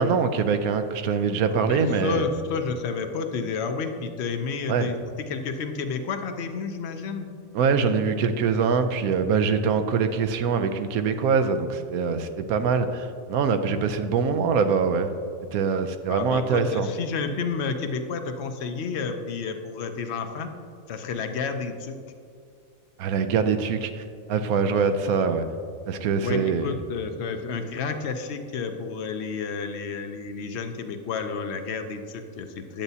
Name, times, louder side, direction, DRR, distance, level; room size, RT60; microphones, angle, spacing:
voice 1, 0.0-2.2 4.7-4.9 7.5-15.1 15.5-16.9 23.0-24.0 24.3-25.4 25.9-26.7, right 5 dB, 85° right, 8 dB, 1.1 m, -23 dB
voice 2, 1.5-7.3 16.1-20.5 20.9-22.0 26.1-32.8, left 5 dB, 60° left, 7 dB, 0.8 m, -31 dB
10.0 x 7.9 x 2.8 m, 2.3 s
omnidirectional pair, 1.5 m